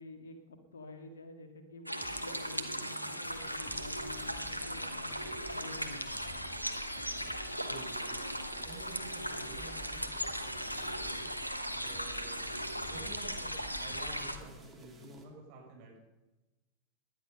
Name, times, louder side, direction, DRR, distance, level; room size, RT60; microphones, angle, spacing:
voice 1, 0.0-5.2 5.5-6.0, left 2 dB, 70° left, 6 dB, 2.1 m, -49 dB
sound 1, 1.9-14.4, equal, 90° left, 1.1 m, -38 dB
sound 2, 2.0-15.2, right 3 dB, 15° right, 2.8 m, -54 dB
sound 3, 3.3-14.5, left 4 dB, 40° left, 3.0 m, -54 dB
voice 2, 7.5-11.3 11.7-12.5 12.8-16.0, right 2 dB, 45° right, -2 dB, 6.5 m, -51 dB
18.5 x 11.0 x 5.5 m, 1.1 s
figure-of-eight pair, 90°, 0 cm